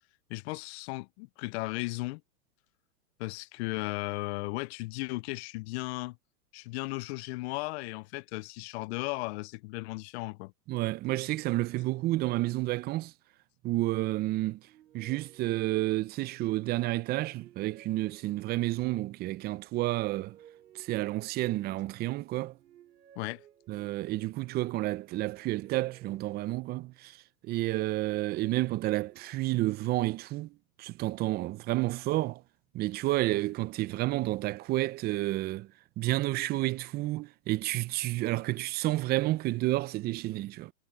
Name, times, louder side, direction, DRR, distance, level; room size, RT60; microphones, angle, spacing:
voice 1, 0.3-2.2 3.2-6.2 6.5-10.5 23.2-23.4, left 23 dB, 45° left, 0.7 m, -36 dB
voice 2, 10.7-13.1 13.6-14.6 14.9-20.4 20.7-22.5 23.7-27.2 27.4-32.4 32.7-35.7 36.0-40.7, right 17 dB, 20° right, 0.5 m, -30 dB
sound 1, 14.3-16.4 16.9-18.9 19.6-21.7 22.2-24.2 24.9-27.1 27.6-29.6, right 10 dB, 80° right, 3.3 m, -59 dB
hypercardioid pair, 120°, 48 cm